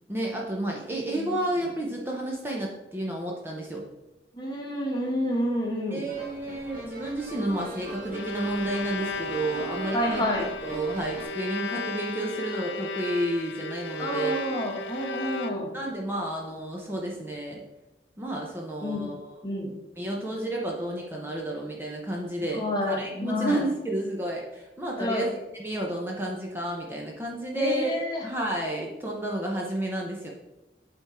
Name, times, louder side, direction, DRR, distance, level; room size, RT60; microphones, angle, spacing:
voice 1, 0.1-3.8 5.9-10.2 10.6-14.4 15.7-17.6 18.2-19.3 20.0-25.3 25.6-27.9 28.2-30.3, right 1 dB, 15° right, -2 dB, 0.7 m, -31 dB
voice 2, 1.1-1.7 4.3-6.0 9.9-10.4 14.0-15.7 18.8-19.0 19.4-19.7 22.5-23.6 25.0-25.3 27.5-28.2, left 1 dB, 25° left, -1 dB, 1.3 m, -29 dB
sound 1, 6.1-11.2, right 1 dB, 50° right, 1.3 m, -40 dB
Bowed string instrument, 8.0-15.9, left 2 dB, 80° left, 0.4 m, -35 dB
8.6 x 3.7 x 4.3 m, 1.0 s
head